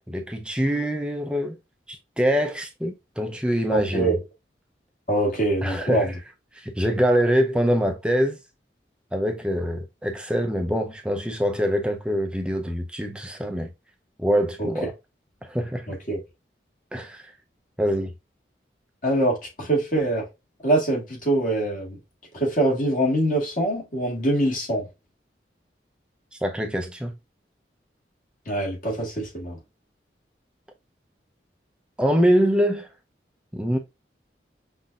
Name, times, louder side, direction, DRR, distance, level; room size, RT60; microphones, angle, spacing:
voice 1, 0.1-1.6 1.9-4.2 5.6-6.1 6.5-8.4 9.1-13.7 14.2-14.9 15.4-15.9 16.9-17.3 17.8-18.1 26.4-27.1 32.0-32.9 33.5-33.8, equal, 5° right, 0.5 m, -24 dB
voice 2, 3.7-4.1 5.1-6.1 14.6-14.7 15.9-16.2 19.0-20.2 20.6-22.0 22.3-24.8 28.5-29.6, right 1 dB, 50° left, 2.0 m, -24 dB
5.7 x 2.6 x 2.3 m
head